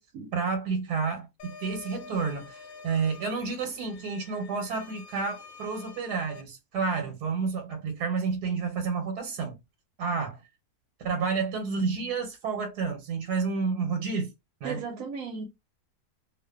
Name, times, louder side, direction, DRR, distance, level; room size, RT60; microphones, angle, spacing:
voice 1, 0.3-9.6 10.0-10.4 11.0-14.3 14.6-14.8, right 5 dB, 85° right, 1.2 m, -30 dB
sound 1, 1.4-6.4, left 4 dB, 70° left, 0.9 m, -48 dB
voice 2, 14.6-15.5, right 5 dB, 70° right, 1.0 m, -35 dB
2.5 x 2.4 x 2.3 m
omnidirectional pair, 1.7 m